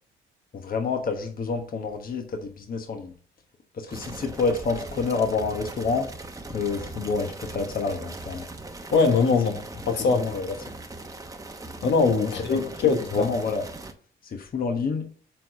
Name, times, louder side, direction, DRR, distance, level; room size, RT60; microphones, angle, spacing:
voice 1, 0.5-3.1 3.7-6.1 6.5-8.5 10.1-10.5 12.5-12.6 13.1-13.6 14.2-15.1, left 4 dB, 45° left, 1.3 m, -28 dB
sound 1, 3.9-13.9, right 2 dB, 15° right, 1.0 m, -40 dB
voice 2, 8.9-10.3 11.8-13.3, left 4 dB, 65° left, 1.4 m, -22 dB
7.4 x 4.1 x 5.2 m
cardioid pair, 90°, 20 cm